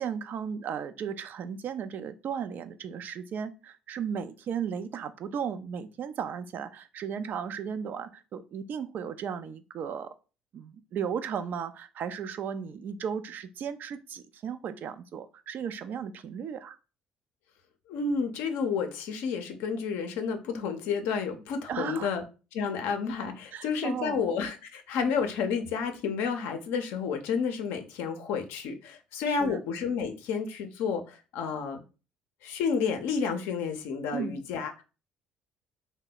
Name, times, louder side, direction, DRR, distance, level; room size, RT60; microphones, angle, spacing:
voice 1, 0.0-10.1 10.5-16.8 21.7-22.1 23.5-24.2 29.3-29.6 34.1-34.4, right 7 dB, 55° right, 11 dB, 0.4 m, -35 dB
voice 2, 17.9-22.2 22.5-31.8 32.4-34.8, left 5 dB, 70° left, 6 dB, 0.5 m, -30 dB
2.8 x 2.1 x 3.8 m, 0.33 s
hypercardioid pair, 55°, 4 cm